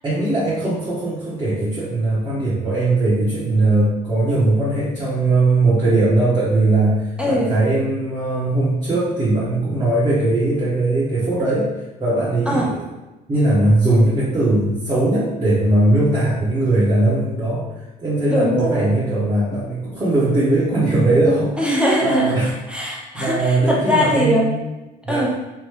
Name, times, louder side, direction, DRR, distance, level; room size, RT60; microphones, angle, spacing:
voice 1, 0.0-11.7 12.0-12.8 13.3-17.6 18.0-21.6 22.0-22.5 23.1-24.6 25.0-25.3, right 2 dB, 25° right, -9 dB, 0.9 m, -19 dB
voice 2, 7.2-7.5 12.5-12.7 18.3-18.9 21.6-24.5 25.1-25.3, equal, 5° right, -3 dB, 0.5 m, -21 dB
2.9 x 2.2 x 3.1 m, 1.0 s
cardioid pair, 110°, 17 cm